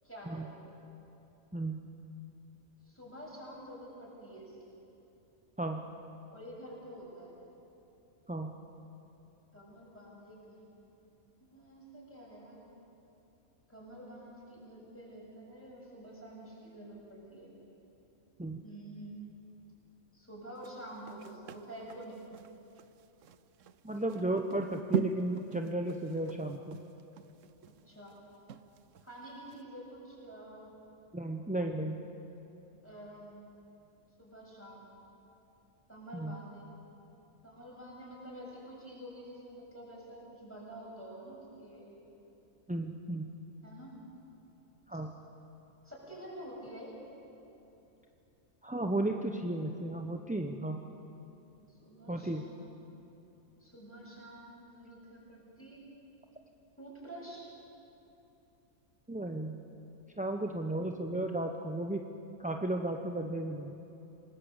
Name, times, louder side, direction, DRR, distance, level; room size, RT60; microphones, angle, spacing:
voice 1, 0.0-0.6 2.8-4.7 6.3-7.4 9.5-10.6 11.4-12.6 13.7-17.5 18.6-19.2 20.1-22.2 27.8-28.1 29.0-30.7 32.8-33.5 34.2-34.9 35.9-36.7 37.4-42.0 43.6-44.0 44.9-45.0 45.8-47.0 51.7-52.7 53.6-55.9 56.8-57.5, right 1 dB, 10° left, -4 dB, 7.0 m, -48 dB
sound 1, 20.6-29.1 29.5-29.6, right 7 dB, 70° right, 1.1 m, -41 dB
voice 2, 23.8-26.8 31.1-32.0 36.1-36.3 42.7-43.3 44.9-45.1 48.6-50.8 52.1-52.4 59.1-59.5 60.2-62.0 62.4-63.8, right 1 dB, 10° right, 3 dB, 0.6 m, -34 dB
27.0 x 19.5 x 8.1 m, 2.9 s
omnidirectional pair, 1.4 m